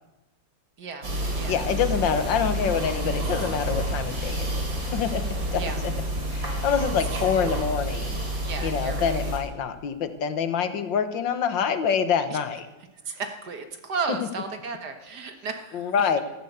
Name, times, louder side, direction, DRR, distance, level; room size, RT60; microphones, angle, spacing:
sound 1, 1.0-9.4, right 1 dB, 85° right, 4.0 m, -29 dB
voice 1, 1.5-4.6 4.9-5.2 5.5-5.6 6.3-8.2 8.6-12.7 15.7-16.2, left 7 dB, 80° left, 10 dB, 1.9 m, -26 dB
voice 2, 6.8-7.2 8.4-9.3 12.3-12.4 13.0-16.2, right 5 dB, 60° right, 6 dB, 2.0 m, -34 dB
14.5 x 11.5 x 8.0 m, 1.1 s
omnidirectional pair, 2.0 m